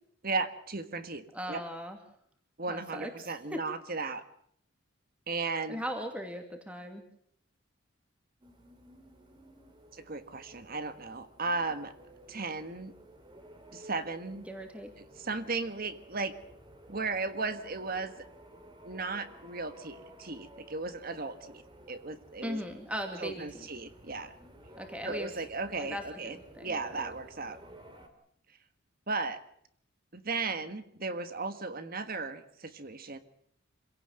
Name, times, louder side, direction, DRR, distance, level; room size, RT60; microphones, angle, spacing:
voice 1, 0.2-1.6 2.6-4.2 5.3-5.8 9.9-11.9 12.3-12.9 13.7-14.5 15.2-16.3 16.9-18.1 18.8-21.6 21.9-22.6 23.2-24.3 25.0-26.4 26.6-27.6 29.1-29.4 30.1-33.2, right 3 dB, 45° right, 10 dB, 1.5 m, -35 dB
voice 2, 1.3-2.0 2.7-3.6 5.7-7.0 14.4-14.9 22.4-23.7 24.8-25.3 25.8-27.1, equal, 5° right, 4 dB, 2.6 m, -39 dB
sound 1, 8.4-28.1, right 1 dB, 25° right, 2.8 m, -54 dB
26.5 x 17.0 x 7.9 m, 0.67 s
head